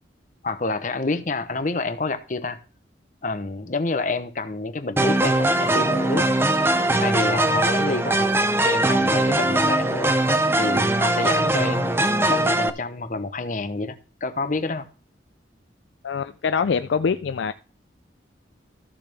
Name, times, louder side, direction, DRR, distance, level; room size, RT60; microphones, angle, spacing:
voice 1, 0.4-2.6 3.2-6.3 7.0-8.3 8.6-10.1 10.6-14.9, left 3 dB, 45° left, 0.8 m, -28 dB
sound 1, 5.0-12.7, right 1 dB, 10° right, 0.5 m, -21 dB
voice 2, 16.0-17.5, left 6 dB, 70° left, 0.4 m, -24 dB
13.5 x 6.7 x 3.4 m
head